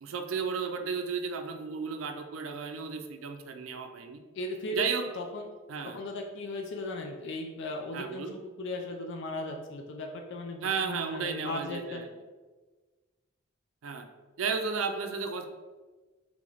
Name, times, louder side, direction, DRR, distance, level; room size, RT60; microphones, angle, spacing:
voice 1, 0.0-4.2 4.7-5.1 5.7-6.0 7.9-8.3 10.6-12.1 13.8-14.1 14.4-15.5, right 5 dB, 90° right, 5 dB, 0.5 m, -33 dB
voice 2, 4.3-4.9 5.2-5.5 5.9-8.3 8.6-12.0, left 2 dB, 65° left, 3 dB, 0.4 m, -37 dB
3.5 x 3.2 x 3.8 m, 1.3 s
head